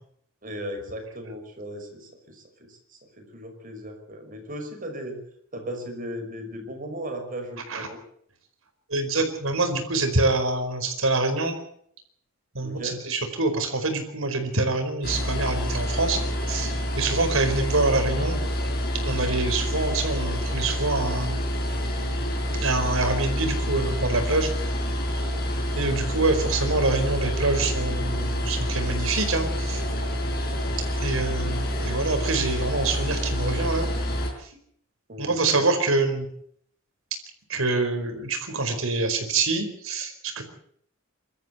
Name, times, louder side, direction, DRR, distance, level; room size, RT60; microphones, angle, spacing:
voice 1, 0.4-5.2 5.5-8.0 12.6-13.0 26.1-26.3 35.1-35.7, equal, 40° right, 5 dB, 5.8 m, -37 dB
voice 2, 8.9-11.6 12.5-16.2 16.5-18.4 19.0-21.4 22.6-24.5 25.7-29.8 31.0-33.9 35.2-36.3 37.5-40.4, right 3 dB, 75° right, 6 dB, 4.8 m, -25 dB
sound 1, 15.0-34.3, equal, 50° left, 5.9 m, -27 dB
25.0 x 13.5 x 8.0 m, 0.65 s
head